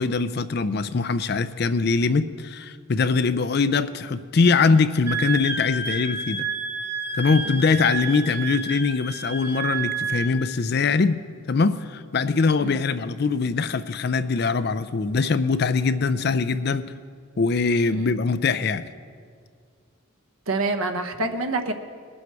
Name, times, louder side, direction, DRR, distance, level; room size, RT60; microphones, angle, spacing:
voice 1, 0.0-6.5 7.2-11.2 11.5-16.9 17.4-18.9, left 4 dB, 50° left, 12 dB, 0.4 m, -22 dB
Wind instrument woodwind instrument, 5.1-10.4, right 4 dB, 10° right, 0.6 m, -30 dB
voice 2, 20.5-21.7, right 2 dB, 80° right, 6 dB, 1.0 m, -27 dB
20.5 x 7.8 x 4.7 m, 2.1 s
head